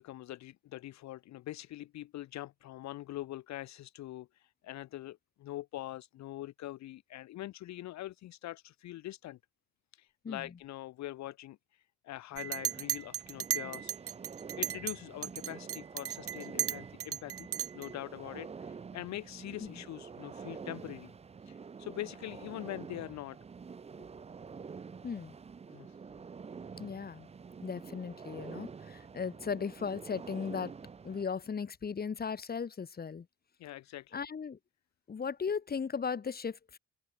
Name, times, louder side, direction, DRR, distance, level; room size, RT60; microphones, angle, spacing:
voice 1, 0.0-9.4 9.9-13.9 14.6-17.5 17.7-21.1 21.4-23.4 25.7-26.0 33.6-34.2, left 15 dB, 65° left, 0.6 m, -43 dB
sound 1, 12.3-31.2, right 5 dB, 20° right, 0.5 m, -48 dB
Chink clink, 12.4-15.0 15.2-17.9, right 10 dB, 50° right, 0.8 m, -35 dB
voice 2, 25.0-25.3 26.8-27.3 27.6-30.7 31.0-33.3 34.1-34.6 35.1-36.8, left 6 dB, 30° left, 1.1 m, -37 dB
open air
cardioid pair, 90°, 30 cm